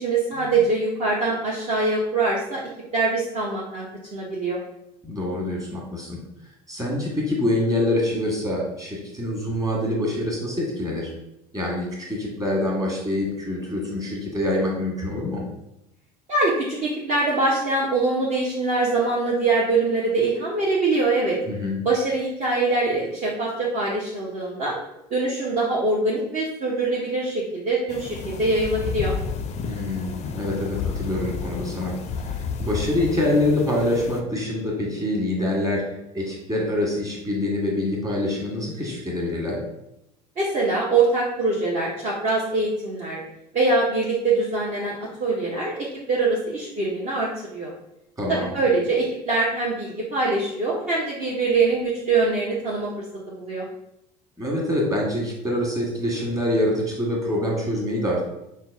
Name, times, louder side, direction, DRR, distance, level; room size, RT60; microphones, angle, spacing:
voice 1, 0.0-2.6 2.9-3.9 4.1-4.6 16.3-21.4 21.8-24.8 25.1-29.1 40.4-43.2 43.5-45.7 46.1-47.7 48.3-52.9 53.3-53.6, right 3 dB, 35° right, -4 dB, 0.8 m, -23 dB
voice 2, 5.0-6.2 6.7-11.1 11.5-15.4 21.4-21.8 29.6-35.8 36.1-39.6 48.2-48.5 54.4-58.3, left 1 dB, 15° right, -2 dB, 1.5 m, -25 dB
sound 1, 27.9-34.2, left 5 dB, 35° left, 0.5 m, -31 dB
5.4 x 2.2 x 3.4 m, 0.85 s
figure-of-eight pair, 65°, 21 cm